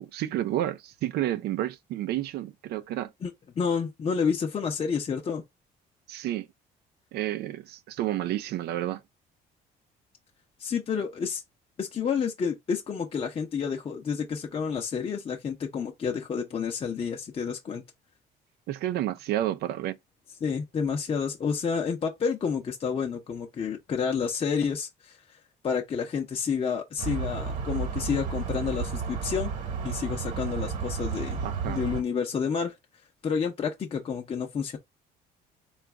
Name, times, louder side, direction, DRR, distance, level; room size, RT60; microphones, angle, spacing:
voice 1, 0.0-3.1 6.1-6.5 7.1-9.0 18.7-20.0 31.4-31.8, right 13 dB, 70° right, 0.5 m, -30 dB
voice 2, 3.2-5.4 10.6-11.4 11.8-17.8 20.4-25.2 25.6-29.5 29.8-31.4 31.7-32.7 33.2-34.8, left 6 dB, 35° left, 0.7 m, -29 dB
sound 1, 27.0-32.0, right 5 dB, 45° right, 1.2 m, -32 dB
3.9 x 2.4 x 3.4 m
cardioid pair, 110°, 17 cm